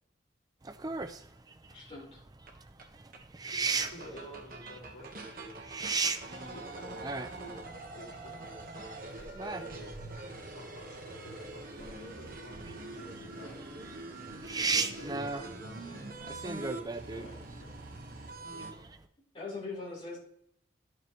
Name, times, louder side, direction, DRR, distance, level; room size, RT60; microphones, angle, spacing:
sound 1, 0.6-19.1, right 4 dB, 20° right, 0.5 m, -37 dB
voice 1, 1.7-2.2 19.3-20.2, left 3 dB, 30° left, -6 dB, 4.3 m, -41 dB
sound 2, 2.5-2.6 2.8-2.9 3.1-3.2 3.5-18.7, right 2 dB, 50° right, 1.4 m, -44 dB
voice 2, 3.5-5.6 6.1-10.0 10.2-13.8 14.5-17.8 18.4-18.9, equal, 90° left, -3 dB, 3.0 m, -50 dB
12.0 x 6.7 x 3.2 m, 0.70 s
head